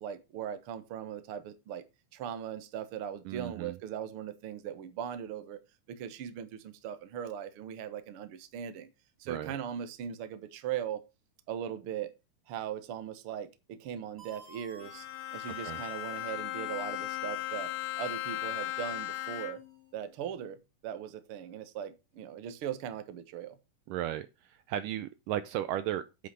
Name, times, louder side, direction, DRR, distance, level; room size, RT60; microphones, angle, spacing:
voice 1, 0.0-1.8 2.1-5.6 5.9-8.9 9.2-11.0 11.5-12.1 12.5-15.1 15.3-19.6 19.9-23.6, right 9 dB, 60° right, 1.5 m, -39 dB
voice 2, 3.3-3.8 9.3-9.6 15.6-15.8 23.9-24.3 24.7-26.3, right 12 dB, 75° right, 2.1 m, -35 dB
sound 1, 14.2-20.0, right 2 dB, 25° right, 1.6 m, -57 dB
Bowed string instrument, 14.8-19.8, left 15 dB, 75° left, 2.0 m, -37 dB
8.4 x 8.0 x 5.0 m
omnidirectional pair, 4.1 m